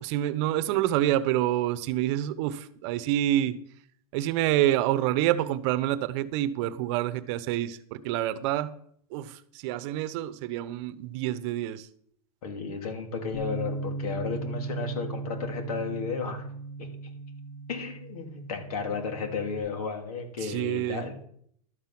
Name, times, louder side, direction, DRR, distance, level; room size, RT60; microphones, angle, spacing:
voice 1, 0.0-3.6 4.1-8.7 9.1-11.9 20.4-21.0, right 13 dB, 50° right, 14 dB, 0.9 m, -27 dB
voice 2, 12.4-16.5 16.8-16.9 17.7-21.3, left 4 dB, 75° left, 4 dB, 3.2 m, -33 dB
Bass guitar, 13.3-19.6, right 2 dB, 55° left, 2.8 m, -37 dB
12.5 x 7.5 x 6.0 m, 0.65 s
hypercardioid pair, 130°, 19 cm